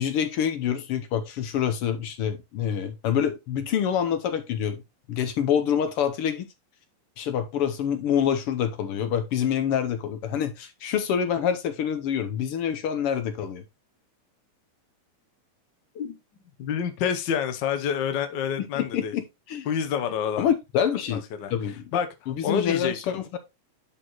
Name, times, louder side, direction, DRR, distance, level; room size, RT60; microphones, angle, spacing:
voice 1, 0.0-4.8 5.1-6.5 7.2-13.6 18.6-19.7 20.4-21.2 21.5-21.9 22.3-23.4, left 8 dB, 75° left, 1.4 m, -26 dB
voice 2, 16.6-19.1 19.7-20.5 21.1-21.5 21.9-22.1 22.4-23.2, left 8 dB, 90° left, 0.9 m, -28 dB
11.0 x 4.2 x 3.0 m
omnidirectional pair, 3.4 m